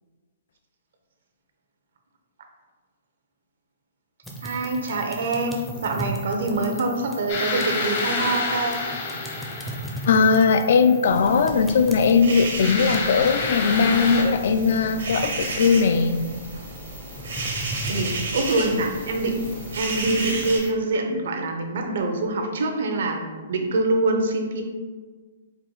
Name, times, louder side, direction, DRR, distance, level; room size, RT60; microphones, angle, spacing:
sound 1, 4.2-20.7, right 2 dB, 5° left, 0.5 m, -38 dB
voice 1, 4.4-8.8 17.9-19.5 19.7-24.6, right 2 dB, 65° right, 3 dB, 0.6 m, -25 dB
sound 2, 7.3-10.5 12.6-14.2, left 3 dB, 50° left, 0.7 m, -28 dB
voice 2, 10.0-16.2, left 5 dB, 65° left, 10 dB, 0.3 m, -19 dB
sound 3, 11.0-20.6, right 2 dB, 85° right, 1.3 m, -33 dB
4.6 x 2.3 x 3.9 m, 1.4 s
hypercardioid pair, 155°, 0 cm